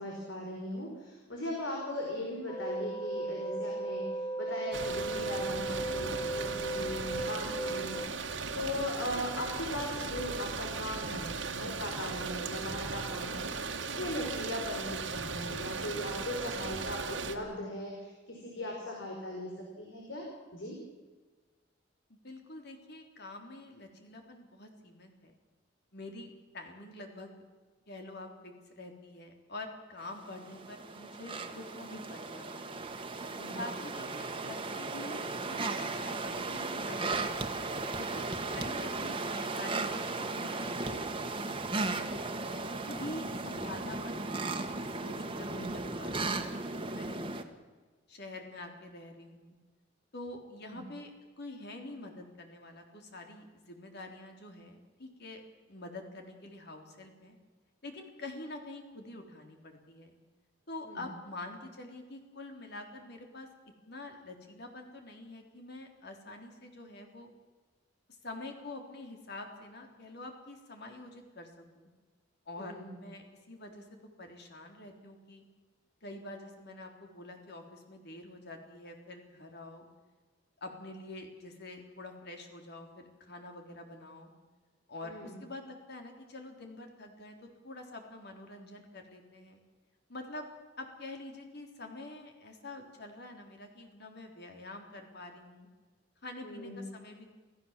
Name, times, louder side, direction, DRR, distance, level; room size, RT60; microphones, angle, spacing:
voice 1, 0.0-20.2 20.5-20.8 33.4-33.6 45.5-45.8 50.7-50.8 60.8-61.0 72.6-73.0 85.0-85.3 96.4-96.9, left 1 dB, 85° left, 0 dB, 5.0 m, -39 dB
sound 1, 2.5-8.1, right 2 dB, 20° left, 1.2 m, -36 dB
sound 2, 4.7-17.4, right 4 dB, 75° right, 1.9 m, -37 dB
voice 2, 22.1-25.3 25.9-27.3 27.9-32.8 33.5-37.4 37.9-42.1 42.8-44.5 44.9-47.6 48.1-49.5 50.1-51.1 51.4-55.4 55.7-57.3 57.8-60.1 60.7-63.5 63.9-67.3 68.1-71.9 72.5-75.4 76.0-79.9 80.6-84.3 84.9-87.4 87.6-89.6 90.1-90.5 90.8-95.7 96.2-97.3, left 2 dB, 60° left, 3 dB, 3.6 m, -46 dB
sound 3, 30.1-47.4, right 3 dB, 30° right, 1.7 m, -36 dB
27.5 x 16.0 x 7.5 m, 1.3 s
head